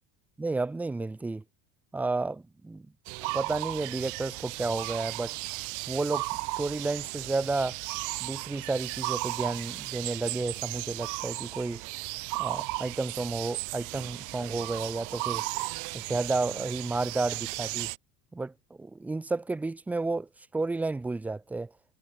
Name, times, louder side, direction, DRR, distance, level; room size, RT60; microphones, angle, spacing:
voice 1, 0.4-1.4 1.9-2.9 3.2-5.4 5.9-6.3 6.6-7.8 8.2-11.8 12.4-15.5 15.9-17.9 18.3-18.5 18.8-21.7, right 3 dB, 5° right, 0.5 m, -31 dB
sound 1, 3.1-18.0, right 27 dB, 50° right, 1.8 m, -35 dB
cardioid pair, 180°, 38 cm